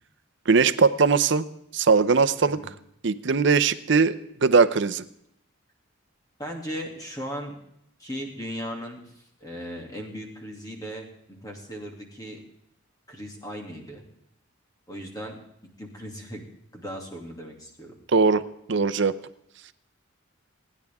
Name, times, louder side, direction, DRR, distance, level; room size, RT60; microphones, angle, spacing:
voice 1, 0.5-1.4 1.7-2.6 3.0-4.1 4.4-5.0 18.1-18.4 18.7-19.1, right 4 dB, 60° right, 13 dB, 0.7 m, -20 dB
voice 2, 6.4-7.5 8.0-12.4 13.1-14.0 14.9-15.4 15.8-16.4 16.7-17.9, equal, 20° left, 1 dB, 2.5 m, -37 dB
29.0 x 10.0 x 3.6 m, 0.77 s
head